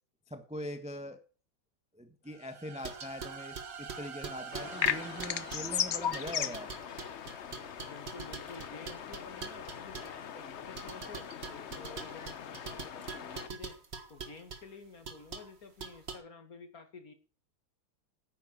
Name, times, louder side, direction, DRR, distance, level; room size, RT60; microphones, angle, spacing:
voice 1, 0.3-1.2 1.9-6.7, left 1 dB, 5° right, 8 dB, 0.8 m, -42 dB
sound 1, 2.3-7.1, right 6 dB, 70° right, 2.0 m, -47 dB
sound 2, 2.8-5.7 6.1-10.2 10.7-14.6 15.0-15.5 15.8-16.2, right 5 dB, 35° right, 1.7 m, -44 dB
sound 3, 4.5-13.5, left 8 dB, 60° left, 0.7 m, -38 dB
voice 2, 7.9-13.8 14.1-17.1, left 4 dB, 45° left, 8 dB, 2.3 m, -51 dB
10.5 x 9.3 x 7.2 m, 0.38 s
omnidirectional pair, 2.2 m